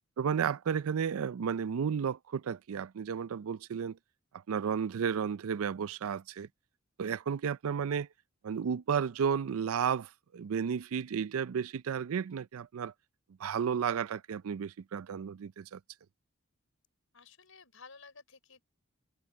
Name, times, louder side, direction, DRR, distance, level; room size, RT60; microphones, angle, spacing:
voice 1, 0.2-4.0 4.5-6.5 7.0-8.1 8.4-12.9 13.4-15.8, right 7 dB, 80° right, 0.4 m, -33 dB
voice 2, 17.1-18.6, left 4 dB, 70° left, 5.5 m, -54 dB
head